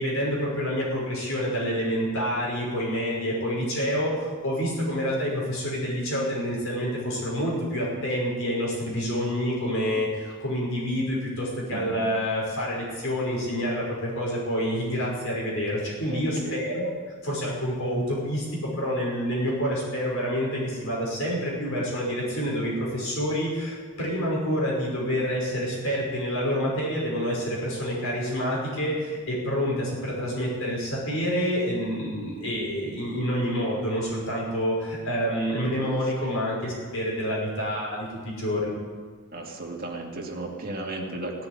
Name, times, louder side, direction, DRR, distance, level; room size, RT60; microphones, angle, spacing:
voice 1, 0.0-16.9 17.2-38.8, equal, 60° left, -4 dB, 5.6 m, -28 dB
voice 2, 11.7-12.0 16.1-16.6 36.2-36.4 39.3-41.5, right 2 dB, 40° right, 0 dB, 2.4 m, -35 dB
18.0 x 7.6 x 10.0 m, 1.5 s
head